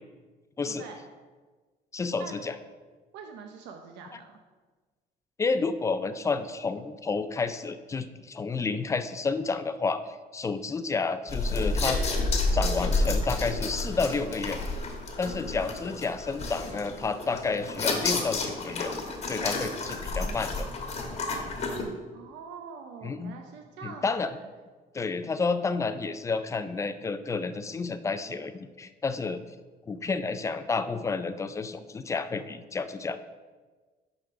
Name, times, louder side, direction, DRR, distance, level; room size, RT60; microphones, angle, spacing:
voice 1, 0.7-1.1 2.2-2.3 3.1-4.4 22.1-24.5, right 6 dB, 90° right, 4 dB, 0.8 m, -44 dB
voice 2, 1.9-2.5 5.4-12.0 12.5-14.6 15.2-18.9 19.3-20.5 23.0-23.3 23.8-24.3 24.9-29.4 29.9-33.2, left 4 dB, 15° left, 11 dB, 0.4 m, -30 dB
sound 1, 11.3-21.8, left 3 dB, 40° left, 1.2 m, -30 dB
6.4 x 5.0 x 5.8 m, 1.3 s
cardioid pair, 140°, 18 cm